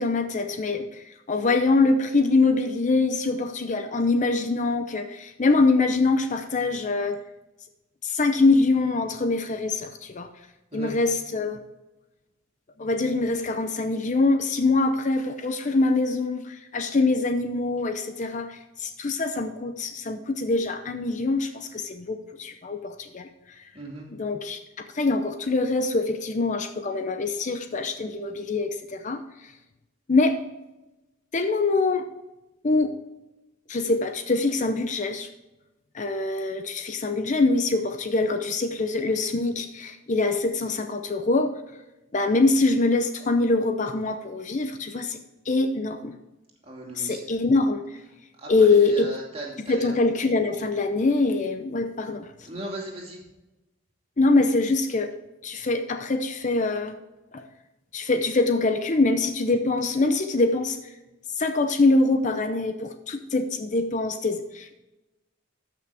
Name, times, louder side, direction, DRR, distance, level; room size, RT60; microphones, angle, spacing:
voice 1, 0.0-7.2 8.0-10.3 10.7-11.6 12.8-23.6 24.1-24.6 24.9-29.5 30.1-30.4 31.3-32.1 32.6-32.9 33.7-35.3 35.9-41.5 42.1-45.2 45.5-46.1 47.0-48.0 48.5-49.1 49.7-52.3 54.2-55.1 55.4-57.0 57.3-57.5 57.9-60.8 61.3-64.8, left 3 dB, 35° left, 8 dB, 0.6 m, -24 dB
voice 2, 23.7-24.1 46.7-47.2 48.4-48.5 48.9-49.9 52.4-53.2, right 1 dB, 30° right, -2 dB, 2.7 m, -37 dB
13.5 x 6.0 x 3.4 m, 1.0 s
head